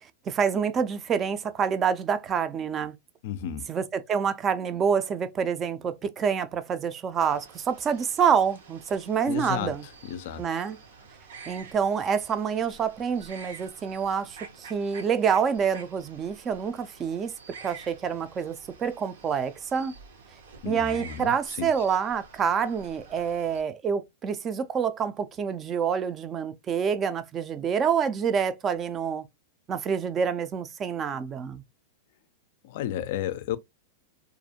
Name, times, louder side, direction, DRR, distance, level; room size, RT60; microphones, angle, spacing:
voice 1, 0.3-2.9 3.7-9.8 10.4-10.8 11.5-17.3 17.6-19.9 20.6-29.2 29.7-31.6, right 7 dB, 25° right, 0.3 m, -27 dB
voice 2, 3.2-3.8 9.3-9.7 10.0-10.5 20.6-21.7 32.6-33.6, left 10 dB, 60° left, 0.3 m, -33 dB
sound 1, 7.3-23.6, right 5 dB, 80° right, 0.8 m, -49 dB
2.4 x 2.1 x 2.7 m
hypercardioid pair, 125°, 0 cm